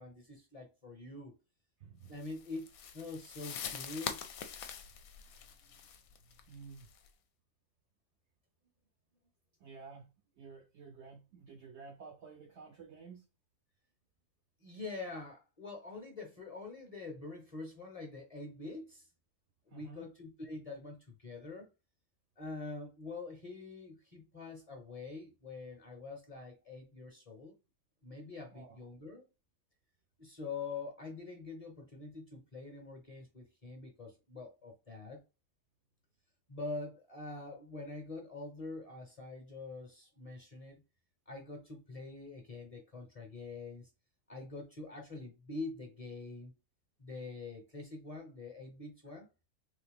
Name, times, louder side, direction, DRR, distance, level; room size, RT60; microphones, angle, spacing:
voice 1, 0.0-1.3 2.1-4.2 14.6-19.1 19.7-21.7 22.4-27.5 28.0-29.2 30.2-35.2 36.5-40.8 41.3-43.9 44.3-46.5 47.0-49.3, left 3 dB, 30° left, 0.8 m, -45 dB
voice 2, 1.8-2.2 5.7-5.8 6.3-6.9 9.6-13.2 19.7-20.1 28.5-28.8, right 5 dB, 65° right, 0.7 m, -52 dB
sound 1, 2.2-7.1, left 8 dB, 75° left, 1.0 m, -44 dB
3.8 x 2.7 x 3.4 m
omnidirectional pair, 1.6 m